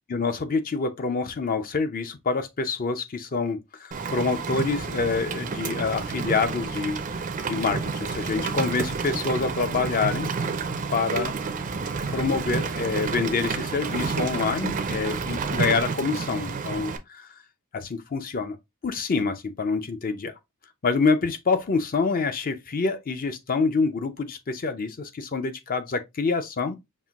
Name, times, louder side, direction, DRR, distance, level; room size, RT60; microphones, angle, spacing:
voice 1, 0.1-7.0 7.5-10.3 10.9-11.3 12.1-17.2 17.7-18.6 18.8-20.3 20.8-26.8, left 4 dB, 40° left, 0.5 m, -26 dB
Rain, 3.9-17.0, right 4 dB, 40° right, 0.4 m, -30 dB
5.5 x 2.5 x 2.3 m
head